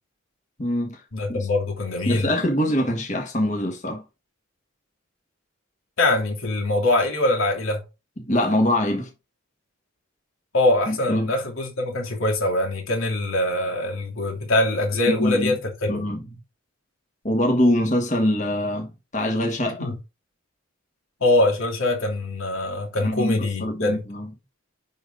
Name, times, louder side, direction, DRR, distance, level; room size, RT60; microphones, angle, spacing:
voice 1, 0.6-1.0 1.3-1.5 2.0-4.0 8.2-9.1 10.9-11.3 15.1-15.6 15.9-16.2 17.2-19.9 23.0-24.3, left 1 dB, 35° left, 1.5 m, -23 dB
voice 2, 1.1-2.3 6.0-7.8 10.5-16.1 19.8-20.0 21.2-24.1, left 2 dB, 85° left, 2.8 m, -23 dB
11.0 x 3.9 x 3.8 m
head